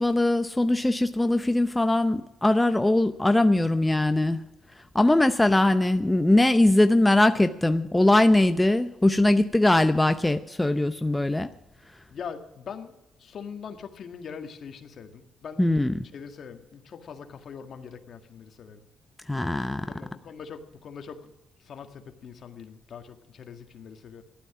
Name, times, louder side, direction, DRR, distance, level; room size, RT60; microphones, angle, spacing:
voice 1, 0.0-4.4 4.9-11.5 15.6-15.9 19.3-19.9, left 1 dB, 10° left, 9 dB, 0.6 m, -21 dB
voice 2, 12.1-15.6 16.1-18.8 19.9-21.3 21.6-24.2, left 6 dB, 55° left, 6 dB, 1.8 m, -42 dB
14.5 x 12.0 x 6.0 m, 0.96 s
cardioid pair, 90°, 0 cm